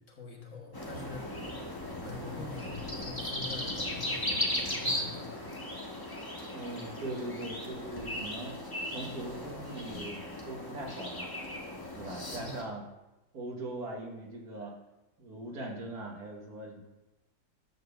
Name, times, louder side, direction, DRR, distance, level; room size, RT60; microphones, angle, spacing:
voice 1, 0.0-1.5 2.0-5.5 12.1-12.6, left 3 dB, 55° left, 0 dB, 1.8 m, -45 dB
sound 1, 0.7-12.6, left 1 dB, 15° left, 1.3 m, -37 dB
voice 2, 6.5-8.5 8.9-11.3 11.9-12.8 13.3-14.7 15.2-16.8, right 2 dB, 85° right, 0 dB, 2.1 m, -40 dB
10.0 x 3.9 x 6.9 m, 1.0 s
omnidirectional pair, 1.6 m